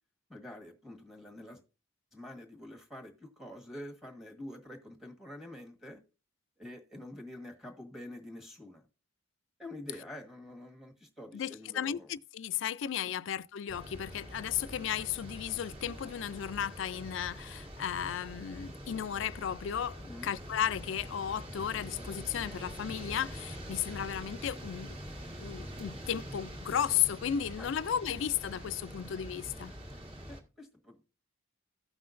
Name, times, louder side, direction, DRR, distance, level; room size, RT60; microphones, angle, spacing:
voice 1, 0.3-1.6 2.1-6.0 6.6-8.8 9.6-12.1 13.0-13.1 20.0-20.3 27.6-27.7 30.3-31.1, left 1 dB, ahead, 1.4 m, -47 dB
voice 2, 11.3-25.0 25.3-29.7, left 9 dB, 65° left, 0.3 m, -34 dB
sound 1, 13.7-30.4, equal, 30° right, 1.6 m, -45 dB
16.0 x 5.6 x 2.5 m
head